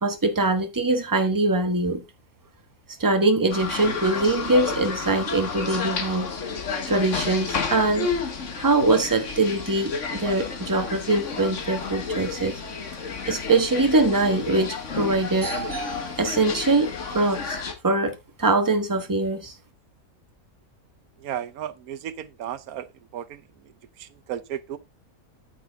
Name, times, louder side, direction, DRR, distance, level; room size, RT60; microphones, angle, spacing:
voice 1, 0.0-2.0 3.0-6.3 6.9-8.1 8.5-12.6 13.3-17.6 17.8-19.5, right 2 dB, 15° right, 1.2 m, -23 dB
sound 1, 3.5-17.7, left 5 dB, 55° left, 1.7 m, -31 dB
voice 2, 21.2-22.9 23.1-23.4 24.0-24.8, right 10 dB, 85° right, 1.2 m, -34 dB
9.1 x 7.6 x 3.4 m
omnidirectional pair, 1.5 m